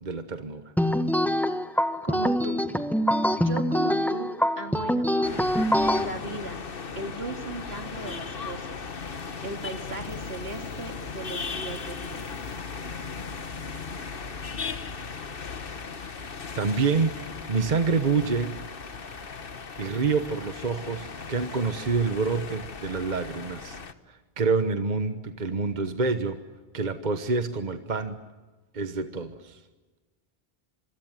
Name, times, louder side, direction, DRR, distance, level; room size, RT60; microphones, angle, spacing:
voice 1, 0.0-0.6 16.6-17.2 17.5-18.6 19.8-23.8 24.1-26.4 26.7-28.2 28.7-29.6, right 4 dB, 45° right, 8 dB, 1.3 m, -27 dB
sound 1, 0.8-6.0, equal, ahead, 1.3 m, -24 dB
voice 2, 2.0-2.6 3.3-5.3 6.0-6.6 7.0-8.8 9.4-12.3, right 2 dB, 65° right, 5 dB, 3.0 m, -37 dB
sound 2, 5.2-23.9, left 5 dB, 55° left, 1.4 m, -37 dB
26.5 x 24.5 x 9.1 m, 1.3 s
omnidirectional pair, 1.1 m